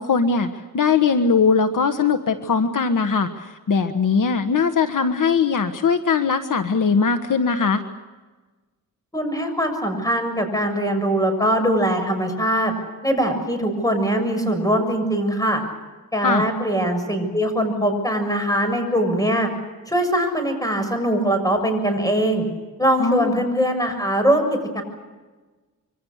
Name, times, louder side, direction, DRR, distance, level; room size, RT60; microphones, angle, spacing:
voice 1, 0.0-7.8 16.2-16.4 23.0-23.4, left 5 dB, 65° left, 8 dB, 1.4 m, -20 dB
voice 2, 9.1-12.7 13.0-15.6 16.1-19.5 19.9-22.4 22.8-24.4 24.7-24.8, right 1 dB, 10° left, 6 dB, 7.1 m, -21 dB
27.0 x 24.5 x 6.5 m, 1.3 s
wide cardioid pair, 90°, 34 cm